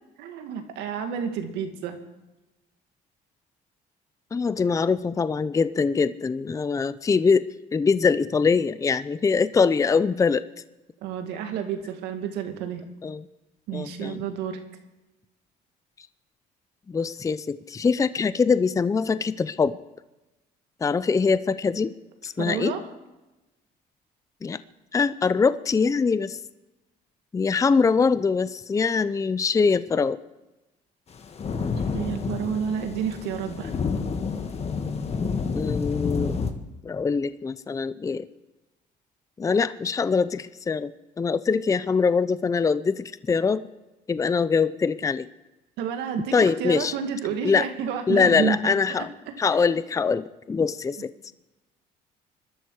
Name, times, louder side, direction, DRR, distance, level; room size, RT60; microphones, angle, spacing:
voice 1, 0.2-2.0 11.0-12.8 13.7-14.6 22.4-22.8 31.9-33.7 45.8-49.1 49.5-49.8, right 7 dB, 85° right, 6 dB, 2.1 m, -30 dB
voice 2, 4.3-10.4 13.0-13.2 13.7-14.2 16.9-19.8 20.8-21.9 22.2-22.7 24.4-24.6 24.9-26.4 27.3-30.2 35.5-36.3 36.8-38.3 39.4-40.9 41.2-43.6 44.1-45.3 46.3-46.9 47.4-47.7 48.1-49.1 49.4-51.1, left 5 dB, 20° left, 14 dB, 0.5 m, -23 dB
sound 1, 31.1-36.5, left 5 dB, 40° left, 1.6 m, -29 dB
22.0 x 12.5 x 4.8 m, 1.0 s
cardioid pair, 110°, 17 cm